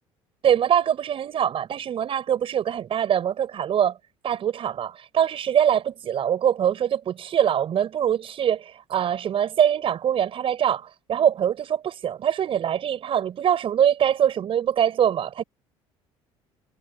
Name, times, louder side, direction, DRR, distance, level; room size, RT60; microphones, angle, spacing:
voice 1, 0.4-3.9 4.2-15.4, right 9 dB, 50° right, 6.2 m, -23 dB
supercardioid pair, 100°, 12 cm